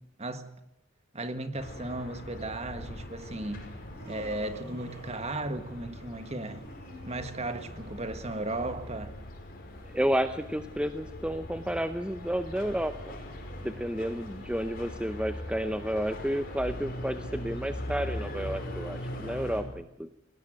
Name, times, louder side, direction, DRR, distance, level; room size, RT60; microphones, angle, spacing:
voice 1, 0.2-0.5 1.1-3.6 4.0-6.6 7.1-9.2, right 2 dB, 30° right, 1.6 m, -35 dB
sound 1, 1.5-19.6, left 1 dB, 45° left, 5.3 m, -41 dB
Laughter, 3.7-5.9 6.4-8.7, right 2 dB, 50° right, 5.6 m, -50 dB
voice 2, 9.9-13.2 13.6-20.1, equal, 5° right, 0.7 m, -31 dB
20.5 x 18.0 x 7.9 m
head